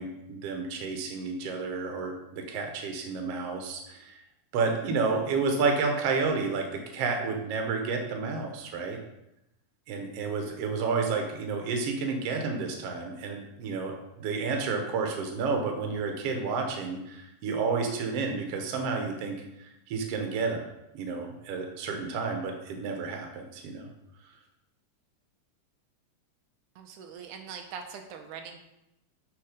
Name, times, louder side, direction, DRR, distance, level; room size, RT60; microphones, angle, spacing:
voice 1, 0.0-4.2 4.5-9.0 9.9-20.6 20.9-23.9, right 4 dB, 60° right, 3 dB, 1.9 m, -31 dB
voice 2, 26.8-28.6, right 6 dB, 85° right, 4 dB, 2.2 m, -42 dB
6.8 x 5.7 x 5.1 m, 0.88 s
omnidirectional pair, 3.6 m